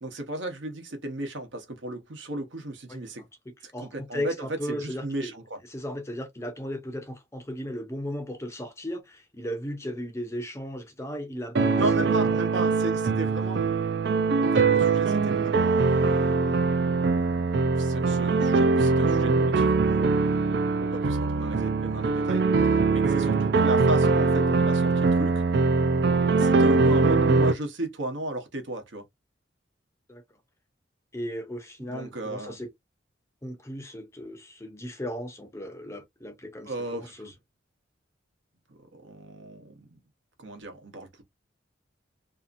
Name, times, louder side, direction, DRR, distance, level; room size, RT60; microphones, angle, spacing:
voice 1, 0.0-3.2 3.6-5.6 11.8-13.6 14.4-16.7 17.8-20.1 20.8-25.4 26.4-29.0 31.8-32.6 36.6-37.3 38.7-40.0 40.4-41.2, right 1 dB, 75° right, 0.9 m, -35 dB
voice 2, 3.5-5.3 5.7-12.4 30.1-30.2 31.1-32.7 33.4-37.3, equal, 15° left, 0.5 m, -36 dB
sound 1, 11.5-27.5, right 4 dB, 55° right, 0.4 m, -22 dB
2.7 x 2.5 x 2.4 m
head